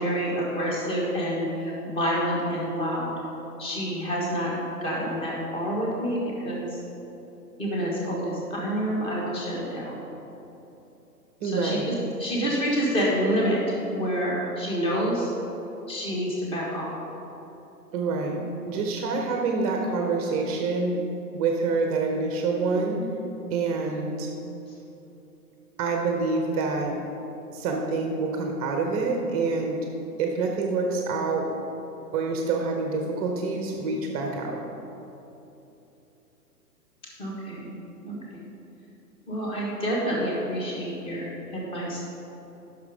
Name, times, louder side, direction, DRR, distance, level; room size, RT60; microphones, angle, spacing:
voice 1, 0.0-3.2 3.6-4.6 4.8-6.8 7.6-10.0 11.4-11.9 12.2-13.6 13.9-15.3 15.9-17.0 37.2-37.8 38.0-38.5 39.3-42.0, equal, 10° left, -4 dB, 1.3 m, -28 dB
voice 2, 11.4-11.9 17.9-21.0 21.3-23.0 23.5-24.3 25.8-27.0 27.5-29.8 30.2-31.5 32.1-34.6, right 4 dB, 25° right, 2 dB, 0.7 m, -27 dB
9.5 x 6.2 x 5.0 m, 3.0 s
hypercardioid pair, 130°, 48 cm